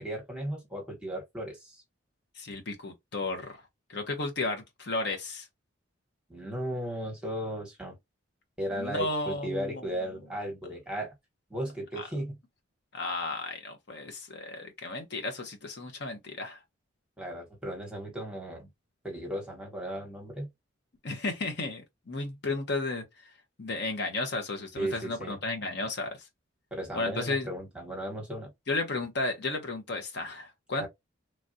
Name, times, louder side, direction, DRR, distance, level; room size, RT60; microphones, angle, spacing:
voice 1, 0.0-1.8 6.3-7.9 8.6-11.1 11.5-12.4 17.2-18.7 19.0-20.5 24.8-25.4 26.7-28.5 30.8-30.9, right 1 dB, 5° right, 1.0 m, -36 dB
voice 2, 2.4-3.5 3.9-5.5 8.7-9.9 12.0-12.1 12.9-16.6 21.0-23.3 23.6-26.3 26.9-27.5 28.7-30.9, left 2 dB, 55° left, 0.7 m, -33 dB
3.1 x 2.4 x 2.6 m
head